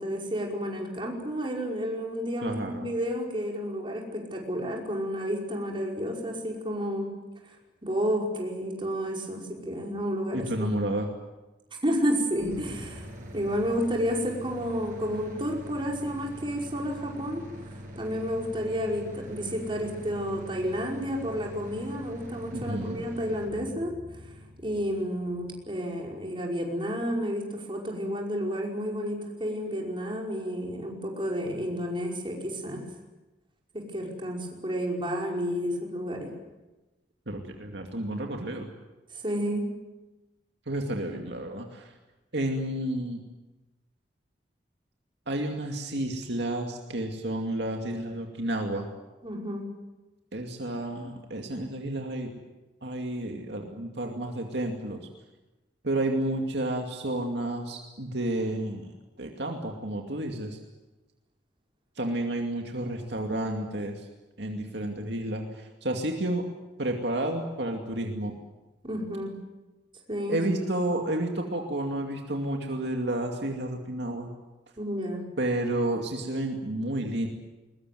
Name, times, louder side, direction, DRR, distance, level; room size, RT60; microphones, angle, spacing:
voice 1, 0.0-7.1 7.8-10.8 11.8-13.1 13.3-17.5 18.0-24.3 24.6-32.8 33.7-36.3 39.1-39.7 49.2-49.7 68.8-69.3 70.1-70.4 74.8-75.3, equal, 30° right, 0 dB, 5.3 m, -31 dB
voice 2, 2.4-2.9 10.3-11.1 22.5-23.0 37.3-38.7 40.7-41.9 42.3-43.2 45.3-48.9 50.3-52.3 52.8-55.1 55.8-60.6 62.0-64.1 64.4-66.5 66.8-68.3 70.3-74.3 75.4-77.3, right 1 dB, 65° right, 2 dB, 2.5 m, -31 dB
sound 1, 12.4-26.3, equal, 45° right, 7.6 m, -44 dB
22.0 x 21.5 x 9.5 m, 1.1 s
head